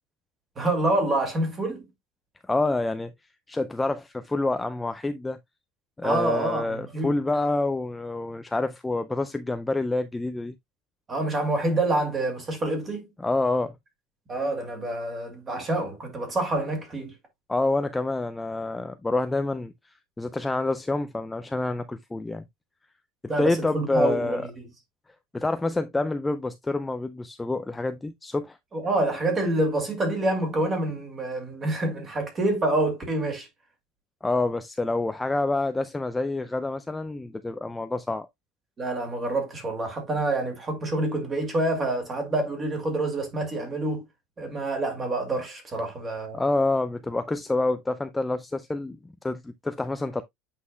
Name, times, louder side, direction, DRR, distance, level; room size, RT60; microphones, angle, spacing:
voice 1, 0.6-1.9 6.0-7.1 11.1-13.1 14.3-17.1 23.3-24.4 28.7-33.5 38.8-44.0 44.4-46.4, right 2 dB, 20° right, 2.2 m, -27 dB
voice 2, 2.5-3.1 3.5-5.4 6.0-10.5 13.2-13.8 17.5-19.7 20.2-22.4 23.4-24.5 25.3-28.6 34.2-38.3 46.3-50.2, left 2 dB, 10° left, 0.3 m, -27 dB
8.1 x 5.6 x 2.3 m
cardioid pair, 165°, 0 cm